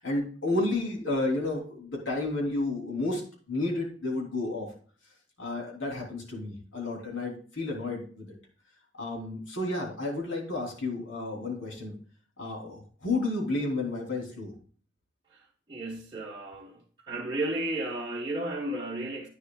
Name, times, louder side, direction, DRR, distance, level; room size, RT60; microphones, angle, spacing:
voice 1, 0.0-3.2 3.5-4.7 5.4-8.3 8.9-11.9 12.4-14.5, left 2 dB, 75° left, 3.4 m, -31 dB
voice 2, 15.3-16.8 17.1-19.3, right 1 dB, 20° right, 1.2 m, -33 dB
11.0 x 9.3 x 2.3 m
head